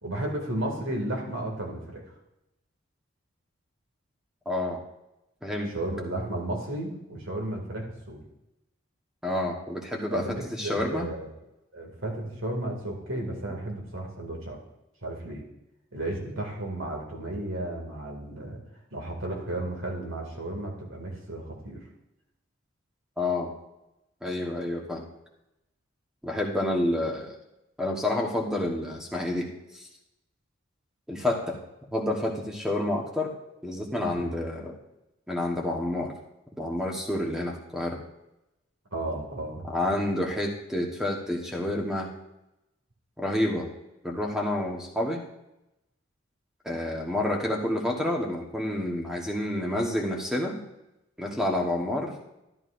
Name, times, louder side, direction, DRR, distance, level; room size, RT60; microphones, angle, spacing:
voice 1, 0.0-2.0 5.7-8.2 10.1-11.3 11.7-14.6 15.0-15.4 15.9-18.6 18.9-21.8 34.1-34.4 38.9-39.7, right 1 dB, 80° right, 0 dB, 2.2 m, -33 dB
voice 2, 4.4-4.8 5.4-5.8 9.2-11.1 23.2-23.5 24.2-25.1 26.2-27.4 27.8-29.5 31.1-31.6 31.9-33.3 33.6-34.8 35.3-36.1 36.6-38.0 39.7-42.1 43.2-43.7 44.0-45.2 46.6-50.7 51.2-52.1, left 1 dB, 5° right, 0 dB, 1.1 m, -29 dB
13.0 x 11.0 x 2.5 m, 0.92 s
head